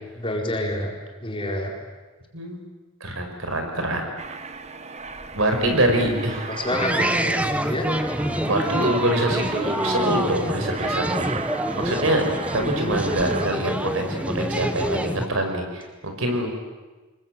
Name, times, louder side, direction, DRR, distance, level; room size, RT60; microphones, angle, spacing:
voice 1, 0.1-0.9 1.2-1.7 5.9-6.2 6.5-7.4 7.7-7.9, left 1 dB, 25° left, 0 dB, 4.5 m, -28 dB
voice 2, 2.3-2.6 3.0-4.1 5.3-6.5 8.4-11.5 11.7-12.2 12.5-16.5, right 1 dB, 65° right, 4 dB, 5.3 m, -25 dB
Aircraft, 4.2-13.5, right 4 dB, 30° right, 1.2 m, -36 dB
sound 1, 6.7-15.3, right 1 dB, 5° right, 1.2 m, -26 dB
26.0 x 22.0 x 9.1 m, 1.3 s
head